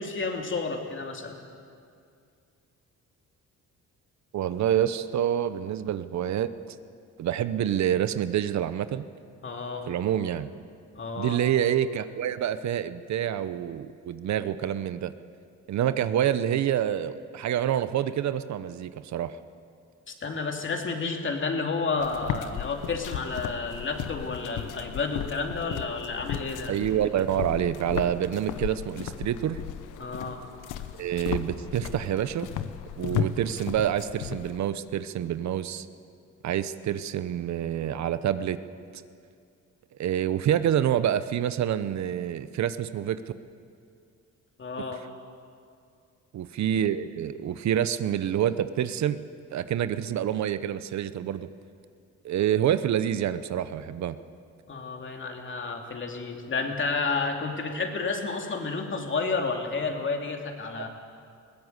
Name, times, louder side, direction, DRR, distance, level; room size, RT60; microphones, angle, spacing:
voice 1, 0.0-1.4 9.4-9.9 10.9-11.4 20.1-26.7 30.0-30.4 44.6-45.0 54.7-60.9, left 4 dB, 40° left, 3 dB, 2.8 m, -31 dB
voice 2, 4.3-6.5 7.2-9.0 9.9-10.5 11.2-15.1 15.7-19.3 26.7-29.6 31.0-32.5 33.0-35.9 36.4-38.6 40.0-43.2 46.3-49.2 49.5-51.5 52.2-54.2, right 10 dB, 65° right, 13 dB, 0.8 m, -27 dB
sound 1, 22.0-34.6, left 9 dB, 90° left, 1.0 m, -35 dB
20.5 x 16.5 x 8.1 m, 2.4 s
cardioid pair, 90°, 30 cm